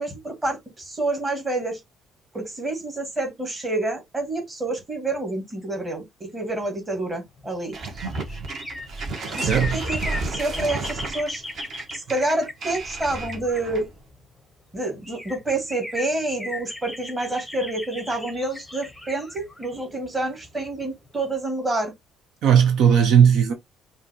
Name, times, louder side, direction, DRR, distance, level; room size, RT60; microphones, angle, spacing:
voice 1, 0.0-1.8 2.3-7.7 9.3-11.4 11.9-13.9 14.7-21.9, right 2 dB, 15° right, 2.1 m, -28 dB
sound 1, 7.4-14.2 14.7-14.8 15.0-20.8 21.2-21.3, left 1 dB, 5° left, 1.0 m, -37 dB
sound 2, 7.7-14.0, right 3 dB, 40° right, 1.7 m, -32 dB
voice 2, 9.4-9.8 22.4-23.5, right 8 dB, 55° right, 0.7 m, -17 dB
5.7 x 2.7 x 2.9 m
cardioid pair, 175°, 0 cm